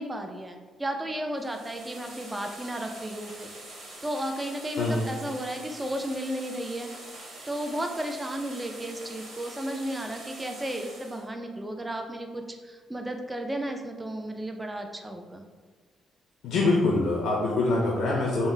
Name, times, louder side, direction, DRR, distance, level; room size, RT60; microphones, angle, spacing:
voice 1, 0.0-3.5 4.0-6.9 7.5-15.4, right 1 dB, 15° right, 4 dB, 0.3 m, -34 dB
sound 1, 1.3-11.3, right 1 dB, 75° right, 0.9 m, -45 dB
voice 2, 4.8-5.1 16.4-18.5, left 2 dB, 80° left, -2 dB, 0.5 m, -24 dB
3.6 x 2.0 x 2.6 m, 1.4 s
cardioid pair, 90°, 0 cm